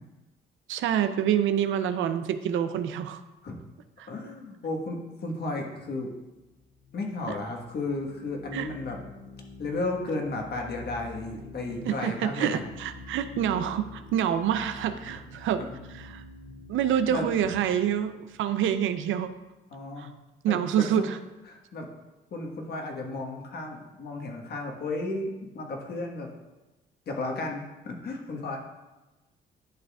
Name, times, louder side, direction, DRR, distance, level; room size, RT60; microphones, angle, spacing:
voice 1, 0.7-3.2 4.0-4.1 7.3-7.4 8.5-8.7 11.9-15.6 15.9-16.2 16.7-19.3 20.0-20.1 20.4-21.2, right 9 dB, 80° right, 10 dB, 0.5 m, -27 dB
voice 2, 4.1-6.1 6.9-9.0 9.6-12.6 15.5-15.7 17.0-17.3 19.7-20.1 20.5-21.0 21.5-21.9 22.3-26.3 27.1-28.6, left 2 dB, 55° left, 1 dB, 1.4 m, -34 dB
sound 1, 6.3-19.6, left 3 dB, 80° left, 2.5 m, -47 dB
10.5 x 6.5 x 2.4 m, 1.1 s
cardioid pair, 90°, 20 cm